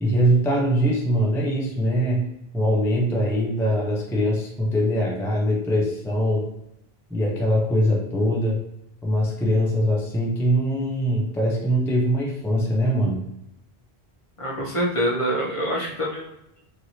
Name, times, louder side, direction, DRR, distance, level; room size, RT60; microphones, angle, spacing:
voice 1, 0.0-6.5 7.1-8.6 9.0-13.2, equal, 5° left, -3 dB, 0.3 m, -22 dB
voice 2, 14.4-16.6, equal, 35° left, -3 dB, 0.6 m, -26 dB
3.0 x 2.6 x 2.8 m, 0.82 s
omnidirectional pair, 1.1 m